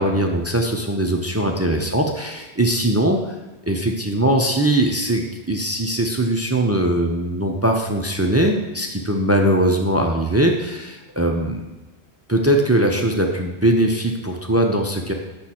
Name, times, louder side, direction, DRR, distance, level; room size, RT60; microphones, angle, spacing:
voice 1, 0.0-3.2 3.7-11.6 12.3-15.1, right 1 dB, 20° right, 3 dB, 0.4 m, -20 dB
8.1 x 6.1 x 4.3 m, 1.1 s
omnidirectional pair, 1.2 m